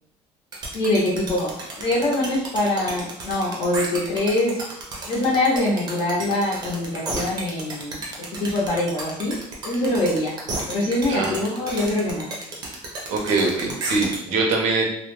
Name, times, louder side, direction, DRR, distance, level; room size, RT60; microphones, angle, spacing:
sound 1, 0.5-14.2, right 2 dB, 35° right, 0.5 m, -32 dB
voice 1, 0.7-4.6 5.1-9.4 9.6-10.4 10.7-12.4, left 1 dB, 50° left, -5 dB, 0.6 m, -24 dB
voice 2, 13.1-14.8, right 3 dB, 85° right, 0 dB, 0.7 m, -22 dB
2.2 x 2.0 x 3.0 m, 0.75 s
cardioid pair, 175°, 12 cm